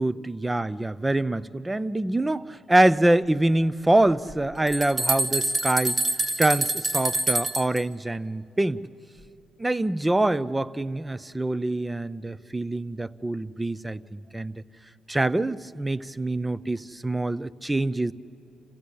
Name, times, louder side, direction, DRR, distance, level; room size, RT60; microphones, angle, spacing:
voice 1, 0.0-6.0 6.4-8.8 9.6-14.5 15.1-18.1, right 1 dB, 15° right, 19 dB, 0.6 m, -25 dB
sound 1, 4.3-7.8, right 2 dB, 35° right, 1.6 m, -26 dB
27.5 x 15.5 x 8.6 m, 3.0 s
cardioid pair, 90°, 0 cm